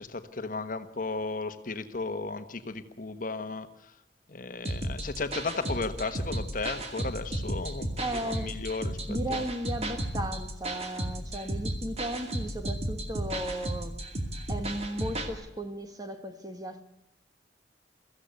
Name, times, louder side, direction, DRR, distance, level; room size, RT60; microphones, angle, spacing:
voice 1, 0.0-3.7 4.3-9.4, left 3 dB, 50° left, 1.3 m, -35 dB
sound 1, 4.6-15.3, right 1 dB, 35° right, 2.4 m, -34 dB
voice 2, 8.0-8.6 9.1-14.0 14.5-16.8, right 1 dB, 20° right, 1.7 m, -35 dB
23.5 x 15.5 x 8.2 m
head